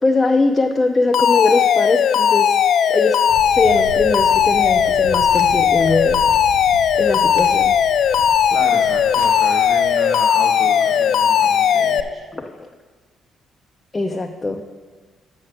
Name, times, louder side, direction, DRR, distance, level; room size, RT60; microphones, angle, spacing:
voice 1, 0.0-2.5 2.9-3.2 3.5-6.2 6.9-7.7 12.3-12.5 13.9-14.6, left 3 dB, 30° left, 3 dB, 0.7 m, -21 dB
Alarm, 1.1-12.0, left 8 dB, 65° left, 0.4 m, -17 dB
sound 1, 3.3-9.9, right 4 dB, 90° right, 0.6 m, -35 dB
voice 2, 8.5-12.2, right 2 dB, 50° right, 1 dB, 1.6 m, -32 dB
7.4 x 6.3 x 6.6 m, 1.4 s
hypercardioid pair, 50°, 0 cm